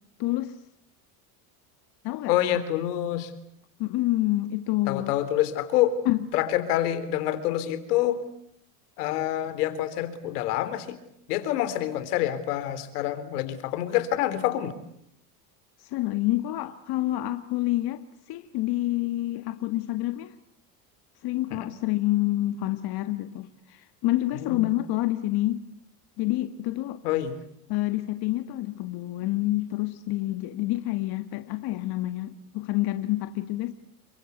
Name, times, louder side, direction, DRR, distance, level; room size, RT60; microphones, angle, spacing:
voice 1, 0.2-0.6 2.0-2.3 3.8-5.1 6.0-6.3 15.8-20.3 21.2-25.6 26.2-27.0 27.7-33.7, left 16 dB, 55° left, 1.7 m, -28 dB
voice 2, 2.3-3.3 4.9-6.0 6.3-8.2 9.0-11.0 11.3-14.7 21.5-21.7 24.3-24.7 27.0-27.4, left 12 dB, 80° left, 3.8 m, -27 dB
29.5 x 24.5 x 8.2 m
supercardioid pair, 105°, 45 cm